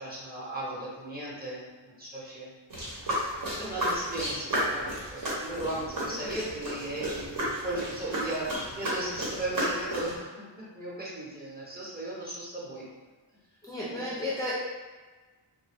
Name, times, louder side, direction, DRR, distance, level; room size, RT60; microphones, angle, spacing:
voice 1, 0.0-2.5 3.4-10.2 10.7-12.8 13.9-14.0, right 1 dB, 20° right, -7 dB, 1.0 m, -36 dB
sound 1, 2.7-10.2, equal, 50° right, 1.1 m, -33 dB
voice 2, 5.7-6.3 13.6-14.5, left 1 dB, 10° left, -8 dB, 0.5 m, -35 dB
2.7 x 2.2 x 3.3 m, 1.3 s
wide cardioid pair, 100°, 45 cm